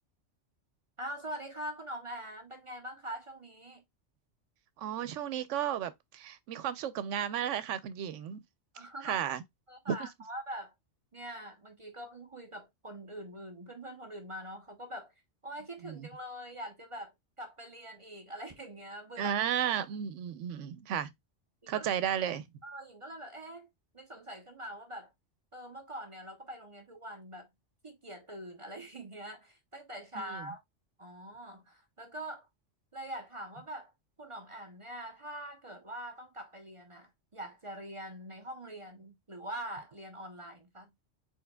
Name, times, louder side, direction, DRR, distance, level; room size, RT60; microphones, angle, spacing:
voice 1, 1.0-3.8 8.7-9.2 9.7-10.7 11.1-15.1 15.4-19.3 21.6-21.9 22.6-23.7 23.9-25.1 25.5-27.5 27.8-30.6 31.0-32.5 32.9-33.9 34.2-40.9, right 1 dB, 30° right, 0.7 m, -44 dB
voice 2, 4.8-8.4 9.0-9.4 9.9-10.0 15.9-16.0 19.2-21.1 21.7-22.4 30.3-30.5, right 9 dB, 85° right, 0.9 m, -33 dB
4.5 x 4.5 x 2.2 m
omnidirectional pair, 1.2 m